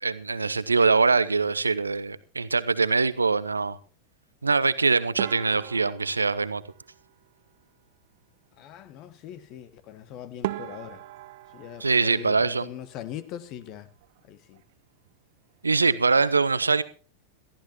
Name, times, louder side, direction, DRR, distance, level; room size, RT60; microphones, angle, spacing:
voice 1, 0.0-3.8 4.4-6.6 11.8-12.7 15.6-16.8, right 4 dB, 80° right, 0.8 m, -23 dB
sound 1, 5.2-7.6 9.9-10.0 10.4-13.2 13.5-14.2 14.5-14.7 15.0-15.1 15.8-16.1, right 17 dB, 50° right, 0.9 m, -39 dB
voice 2, 8.5-11.0 11.5-13.9 14.2-14.6, left 10 dB, 40° left, 1.4 m, -41 dB
22.0 x 14.5 x 3.0 m
figure-of-eight pair, 90°, 0 cm